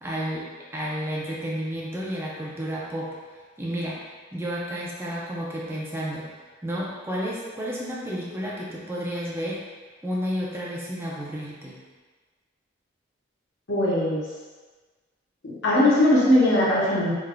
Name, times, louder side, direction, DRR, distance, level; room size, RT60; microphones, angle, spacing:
voice 1, 0.0-3.1 3.6-4.0 4.3-6.3 6.6-9.6 10.0-11.8, equal, 10° right, -5 dB, 0.6 m, -31 dB
voice 2, 13.7-14.2 15.4-17.1, left 1 dB, 70° left, -8 dB, 1.2 m, -20 dB
3.5 x 3.5 x 2.2 m, 1.4 s
head